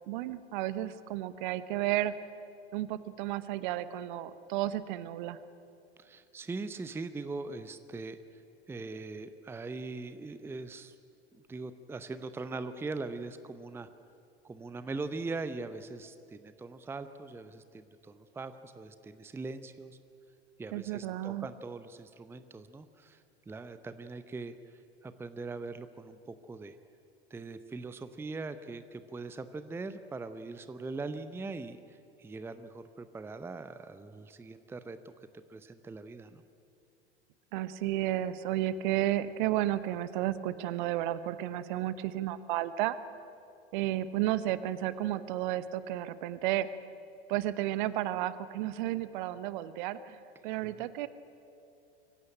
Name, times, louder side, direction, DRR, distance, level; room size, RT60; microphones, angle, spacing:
voice 1, 0.1-2.1 2.7-5.4 20.7-21.5 37.5-43.0 43.7-46.7 47.3-51.1, right 14 dB, 50° right, 15 dB, 1.1 m, -32 dB
voice 2, 6.0-8.4 8.7-11.0 11.3-13.9 14.4-20.0 20.6-26.8 27.3-35.0 35.3-36.4 50.6-50.8, right 3 dB, 5° right, 12 dB, 0.7 m, -41 dB
24.0 x 16.5 x 9.9 m, 2.6 s
figure-of-eight pair, 85°, 32 cm